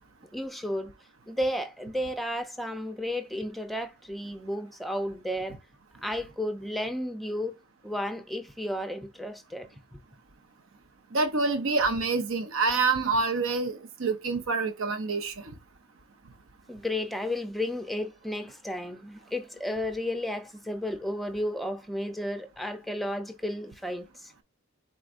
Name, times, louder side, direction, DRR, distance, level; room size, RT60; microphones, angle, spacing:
voice 1, 0.3-0.9 1.3-5.6 6.0-7.5 7.8-9.7 16.7-24.3, left 1 dB, ahead, 0.5 m, -33 dB
voice 2, 11.1-15.5, right 4 dB, 65° right, 0.7 m, -27 dB
4.6 x 4.0 x 2.5 m
head